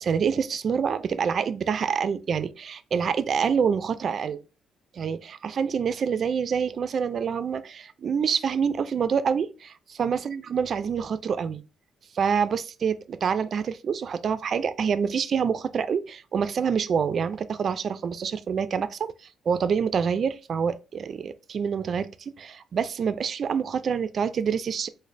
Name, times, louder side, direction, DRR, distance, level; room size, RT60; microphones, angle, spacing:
voice 1, 0.0-4.4 4.9-11.6 12.1-19.1 19.5-24.9, right 6 dB, 55° right, 0.3 m, -26 dB
3.8 x 2.1 x 3.2 m
cardioid pair, 90°, 0 cm